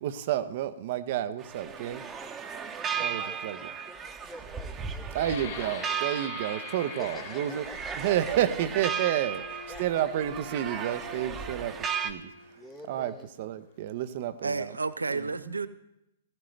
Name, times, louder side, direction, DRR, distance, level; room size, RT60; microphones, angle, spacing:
voice 1, 0.0-2.0 2.9-3.6 5.1-7.6 8.0-12.3 12.9-14.7 15.1-15.5, right 11 dB, 50° right, 0.8 m, -30 dB
sound 1, 1.4-12.1, right 7 dB, 20° right, 1.0 m, -36 dB
voice 2, 1.6-2.4 2.7-6.1 7.0-8.1 9.7-10.1 12.6-13.3, equal, ahead, 0.8 m, -47 dB
sound 2, 5.1-10.8 11.4-11.6 12.1-12.5, left 9 dB, 55° left, 3.7 m, -45 dB
Wind instrument woodwind instrument, 9.0-12.9, right 3 dB, 65° right, 1.8 m, -45 dB
voice 3, 14.4-15.7, right 4 dB, 85° right, 0.5 m, -31 dB
16.0 x 15.5 x 3.3 m
figure-of-eight pair, 115°, 0 cm